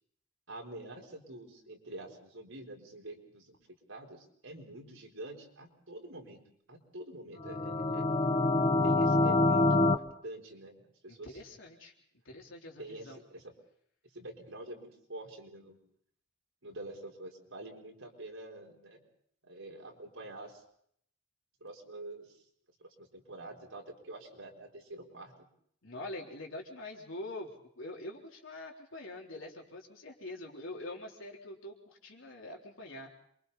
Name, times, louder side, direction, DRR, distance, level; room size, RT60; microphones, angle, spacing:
voice 1, 0.5-3.6 3.9-6.4 6.7-8.2 8.8-10.8 11.0-11.4 12.8-13.5 14.1-15.8 16.6-19.0 19.4-20.6 21.6-22.4 22.8-25.5, right 1 dB, 85° right, 0 dB, 4.3 m, -47 dB
sound 1, 7.4-10.0, left 2 dB, 30° left, 1.0 m, -26 dB
voice 2, 11.1-11.9 12.3-13.2 25.8-27.5 27.8-33.1, left 1 dB, 75° left, 0 dB, 3.7 m, -44 dB
28.0 x 23.5 x 4.2 m, 0.67 s
head